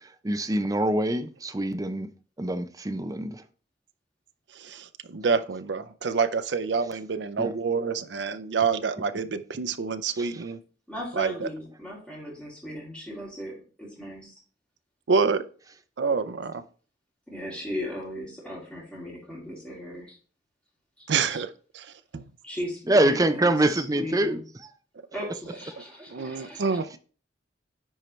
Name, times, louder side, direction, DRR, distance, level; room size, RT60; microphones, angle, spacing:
voice 1, 0.0-2.1 2.4-3.4 7.4-7.5 10.2-10.4 22.9-24.7, right 1 dB, 20° right, 0.5 m, -25 dB
voice 2, 4.5-10.6 11.2-11.5 15.1-15.4 16.0-16.6 21.1-21.5 21.7-22.3 26.1-26.9, right 5 dB, 70° right, 0.5 m, -27 dB
voice 3, 10.9-14.4 17.3-20.2 21.0-21.4 22.4-24.4 25.1-26.8, left 1 dB, 5° left, 2.7 m, -37 dB
10.0 x 4.5 x 3.2 m
head